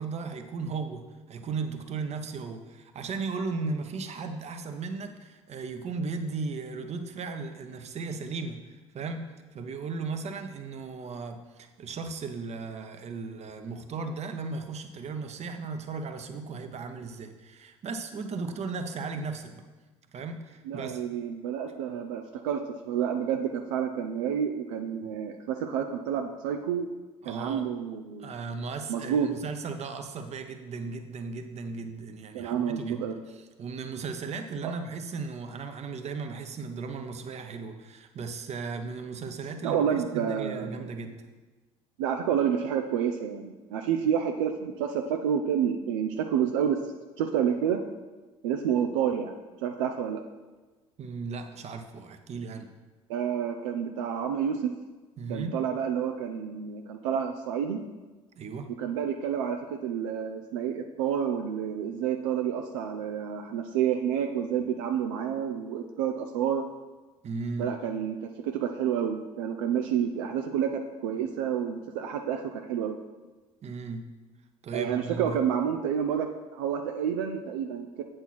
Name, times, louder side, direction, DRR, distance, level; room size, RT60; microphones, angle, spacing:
voice 1, 0.0-8.6 8.9-19.6 20.1-21.0 27.2-27.7 28.2-33.0 33.3-41.2 51.0-52.7 55.2-55.5 58.4-58.8 67.2-67.7 73.6-74.0 74.6-75.4, right 4 dB, 40° right, 7 dB, 0.9 m, -36 dB
voice 2, 20.7-26.9 27.3-28.3 28.9-29.3 32.3-33.2 34.6-34.7 39.6-40.8 42.0-46.8 47.2-47.8 48.4-49.3 49.6-50.2 53.1-54.7 55.3-57.8 58.8-66.7 67.6-73.0 74.7-78.0, right 8 dB, 75° right, 5 dB, 0.5 m, -29 dB
8.1 x 4.4 x 5.9 m, 1.2 s
hypercardioid pair, 65°, 17 cm